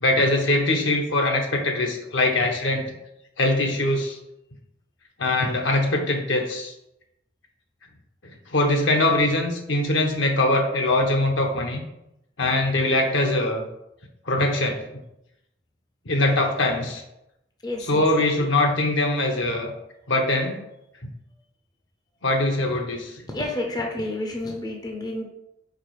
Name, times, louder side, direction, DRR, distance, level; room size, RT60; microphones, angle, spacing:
voice 1, 0.0-2.9 3.4-4.2 5.2-6.7 8.2-11.8 12.4-13.6 14.3-14.8 16.1-17.0 17.8-19.7 20.1-20.6 22.2-23.2, left 2 dB, 70° left, 3 dB, 1.0 m, -22 dB
voice 2, 17.6-18.2 23.3-25.2, left 1 dB, 20° left, 2 dB, 0.6 m, -30 dB
4.9 x 4.1 x 4.7 m, 0.85 s
head